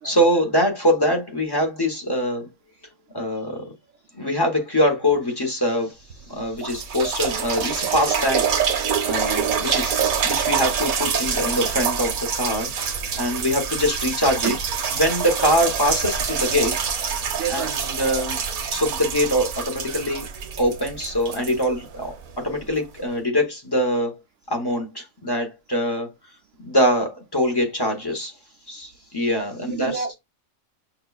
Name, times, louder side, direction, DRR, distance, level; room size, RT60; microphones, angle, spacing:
voice 1, 0.0-2.5 3.1-3.7 4.1-6.0 6.3-8.5 9.1-12.7 13.2-14.5 15.0-16.8 17.5-18.4 18.7-20.2 20.6-24.1 24.5-26.1 26.6-28.3 28.7-30.1, equal, 20° left, 0.8 m, -23 dB
sound 1, 6.1-6.2 6.6-22.3 23.0-23.1, right 7 dB, 90° right, 1.1 m, -26 dB
voice 2, 17.4-17.8 29.4-30.1, right 7 dB, 65° right, 0.7 m, -29 dB
5.7 x 2.3 x 2.3 m
omnidirectional pair, 1.4 m